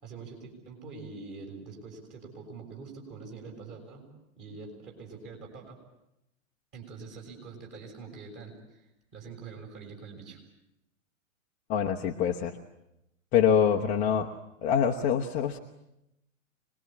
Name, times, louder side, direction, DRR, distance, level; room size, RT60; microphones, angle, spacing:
voice 1, 0.0-4.1 4.4-5.8 6.7-8.9 9.1-10.4, right 4 dB, 25° right, 1 dB, 6.6 m, -45 dB
voice 2, 11.7-12.5 13.3-14.3 14.6-15.6, left 8 dB, 20° left, 1 dB, 1.0 m, -25 dB
25.5 x 20.5 x 8.7 m, 0.85 s
figure-of-eight pair, 115°, 41 cm